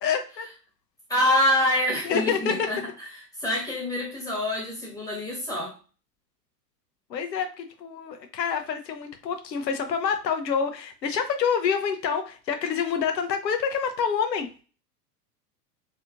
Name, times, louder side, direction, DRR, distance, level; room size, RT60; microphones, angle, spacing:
voice 1, 0.0-0.5 2.0-2.7 7.1-14.5, left 6 dB, 80° left, 6 dB, 0.8 m, -27 dB
voice 2, 1.1-3.1 3.4-5.7, left 1 dB, 5° left, -3 dB, 1.3 m, -26 dB
3.3 x 2.7 x 2.5 m, 0.36 s
hypercardioid pair, 95°, 49 cm